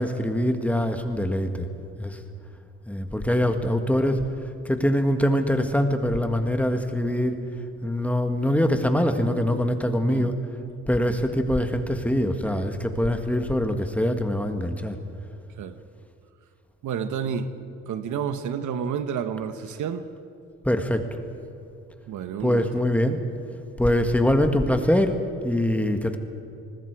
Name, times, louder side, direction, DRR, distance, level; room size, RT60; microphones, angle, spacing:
voice 1, 0.0-1.7 2.0-2.2 2.9-4.2 4.6-7.4 7.8-10.4 10.9-15.0 20.6-21.0 22.4-23.3 23.8-26.2, equal, 5° left, 6 dB, 1.7 m, -23 dB
voice 2, 16.8-17.5 17.9-20.0 22.1-22.7, right 7 dB, 75° right, 10 dB, 1.2 m, -30 dB
27.5 x 20.5 x 4.8 m, 2.6 s
cardioid pair, 90°, 30 cm